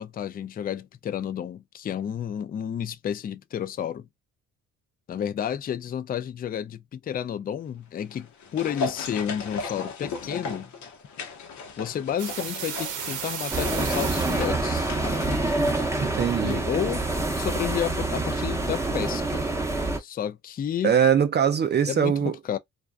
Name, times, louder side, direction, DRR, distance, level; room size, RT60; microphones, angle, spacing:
voice 1, 0.0-4.1 5.1-10.7 11.8-14.9 16.4-17.1 17.4-19.4 20.0-20.9 21.9-22.6, left 9 dB, 30° left, 0.4 m, -31 dB
sound 1, 8.0-16.6 16.9-17.0, left 4 dB, 70° left, 0.8 m, -37 dB
sound 2, 12.2-14.5, right 8 dB, 75° right, 0.7 m, -34 dB
sound 3, 13.5-20.0, right 2 dB, 10° right, 0.8 m, -26 dB
voice 2, 16.0-16.6 20.8-22.4, right 8 dB, 35° right, 0.4 m, -22 dB
2.3 x 2.3 x 2.3 m
cardioid pair, 90°, 30 cm